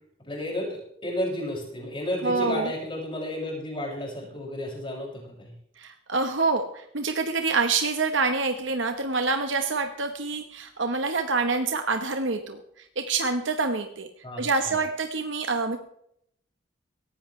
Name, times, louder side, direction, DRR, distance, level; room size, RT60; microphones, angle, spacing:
voice 1, 0.2-5.5 14.2-14.8, left 1 dB, 25° left, -2 dB, 6.6 m, -32 dB
voice 2, 2.2-2.7 5.8-14.1 14.4-15.8, right 4 dB, 70° right, 6 dB, 1.3 m, -26 dB
18.5 x 16.0 x 3.3 m, 0.71 s
head